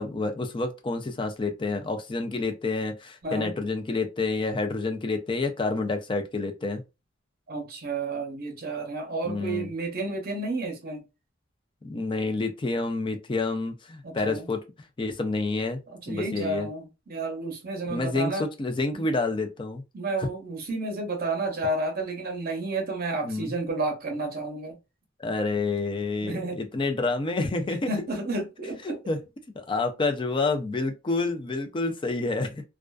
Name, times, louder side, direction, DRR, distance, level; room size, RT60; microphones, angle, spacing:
voice 1, 0.0-6.8 9.2-9.7 11.8-14.6 15.0-15.8 16.1-16.7 17.9-19.8 20.2-20.3 23.2-23.5 25.2-27.9 28.9-29.2 29.6-32.6, left 3 dB, 25° left, 0.4 m, -28 dB
voice 2, 3.2-3.5 7.5-11.0 14.0-14.5 15.9-18.5 18.9-19.0 19.9-24.8 26.2-26.6 27.9-29.0, right 2 dB, 50° right, 0.7 m, -31 dB
2.4 x 2.3 x 2.3 m
head